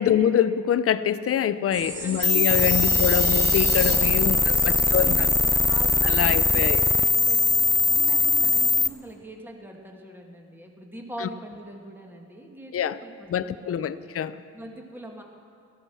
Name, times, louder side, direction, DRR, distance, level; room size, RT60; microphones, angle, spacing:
voice 1, 0.0-5.1 6.0-6.8 11.2-11.3 12.7-13.0 13.3-14.4, left 9 dB, 50° left, 14 dB, 0.7 m, -25 dB
sound 1, 1.7-8.7, right 2 dB, 85° right, 3.8 m, -35 dB
sound 2, 1.9-4.0, right 2 dB, 35° right, 2.6 m, -36 dB
voice 2, 2.0-3.4 3.7-14.0 14.5-15.2, right 1 dB, 5° right, 1 dB, 2.0 m, -43 dB
sound 3, 2.2-8.9, left 3 dB, 10° left, 0.3 m, -21 dB
17.0 x 14.0 x 6.1 m, 2.5 s
cardioid pair, 90°, 30 cm